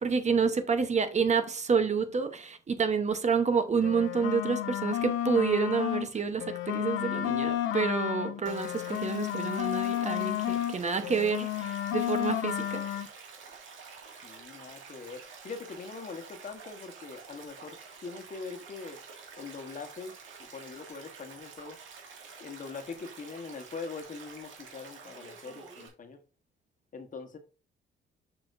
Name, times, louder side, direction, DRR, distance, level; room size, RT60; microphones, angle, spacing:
voice 1, 0.0-12.8, right 5 dB, 35° right, 0.9 m, -29 dB
sound 1, 3.7-6.1 6.4-10.8 11.0-13.1, left 12 dB, 85° left, 0.7 m, -31 dB
Stream, 8.4-25.9, right 5 dB, 75° right, 2.0 m, -49 dB
voice 2, 14.2-19.0 19.4-21.8 22.4-26.2 26.9-27.4, left 4 dB, 40° left, 1.2 m, -42 dB
6.4 x 6.0 x 2.6 m
cardioid pair, 90°, 20 cm